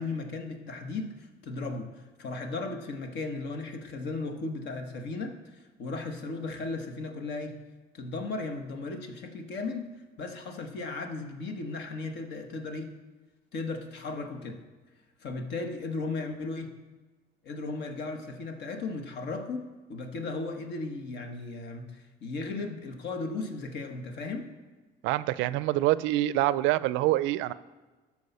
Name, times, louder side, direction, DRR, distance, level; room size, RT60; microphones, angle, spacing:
voice 1, 0.0-7.6 7.9-9.9 10.2-12.9 13.5-14.6 15.2-16.7 17.4-24.5, left 3 dB, 65° left, 6 dB, 1.3 m, -36 dB
voice 2, 25.0-27.5, right 16 dB, 80° right, 17 dB, 0.4 m, -26 dB
13.0 x 4.8 x 5.5 m, 1.3 s
cardioid pair, 110°, 20 cm